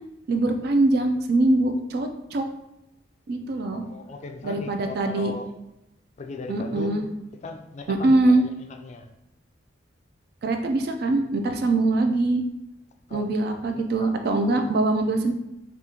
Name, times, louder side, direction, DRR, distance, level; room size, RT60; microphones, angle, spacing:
voice 1, 0.3-2.5 3.3-3.8 4.4-5.3 6.5-7.0 7.9-8.4 10.4-12.4 13.1-15.3, right 2 dB, 55° right, 5 dB, 0.3 m, -23 dB
voice 2, 3.7-5.5 6.2-7.1 7.4-9.1 13.1-13.3 13.7-14.1 14.6-14.7, left 3 dB, 35° left, 5 dB, 0.3 m, -38 dB
2.9 x 2.4 x 3.7 m, 0.88 s
head